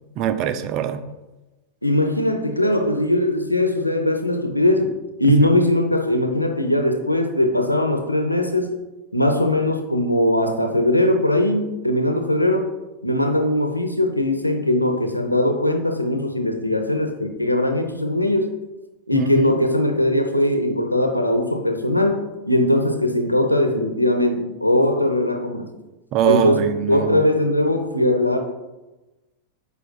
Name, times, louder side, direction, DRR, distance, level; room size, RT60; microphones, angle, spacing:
voice 1, 0.2-1.0 5.3-5.4 19.1-19.5 26.1-27.2, right 9 dB, 40° right, 10 dB, 0.5 m, -22 dB
voice 2, 1.8-4.9 5.2-8.7 9.1-12.7 13.0-18.5 19.1-25.7 26.2-26.6 26.9-28.4, left 1 dB, 90° left, 5 dB, 0.7 m, -20 dB
8.1 x 5.5 x 2.3 m, 1.1 s
figure-of-eight pair, 90°, 0 cm